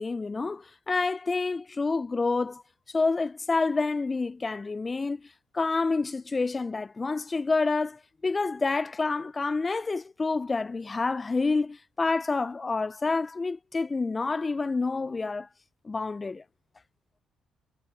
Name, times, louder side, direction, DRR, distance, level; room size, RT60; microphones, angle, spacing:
voice 1, 0.0-2.6 2.9-5.3 5.5-15.5 15.8-16.4, left 3 dB, 25° left, 0.3 m, -28 dB
cardioid pair, 95°, 0 cm